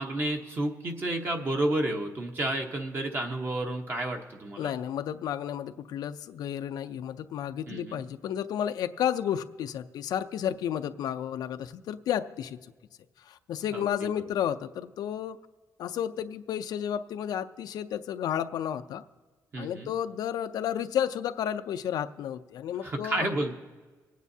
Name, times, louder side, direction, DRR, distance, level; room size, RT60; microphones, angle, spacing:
voice 1, 0.0-4.7 7.7-8.0 13.7-14.1 19.5-19.9 22.8-23.5, right 1 dB, 35° right, 3 dB, 0.9 m, -31 dB
voice 2, 4.6-12.6 13.2-15.4 15.8-19.0 19.6-23.3, left 9 dB, 90° left, 10 dB, 0.4 m, -32 dB
25.0 x 9.3 x 2.7 m, 1.3 s
wide cardioid pair, 160°, 7 cm